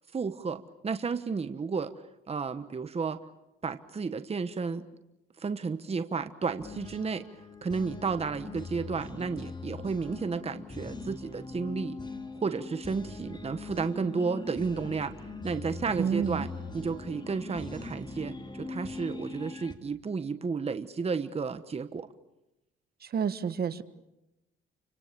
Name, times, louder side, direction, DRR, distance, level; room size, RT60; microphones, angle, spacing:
voice 1, 0.1-1.9 2.3-3.2 3.6-4.8 5.4-7.3 7.6-11.9 12.4-15.1 15.4-16.5 16.7-22.1, right 5 dB, 30° right, 10 dB, 1.3 m, -32 dB
sound 1, 6.6-19.8, left 3 dB, 20° left, 3.1 m, -41 dB
voice 2, 16.0-16.5 23.0-23.8, right 6 dB, 50° right, 12 dB, 1.5 m, -29 dB
29.5 x 25.5 x 7.0 m, 0.95 s
cardioid pair, 90°, 20 cm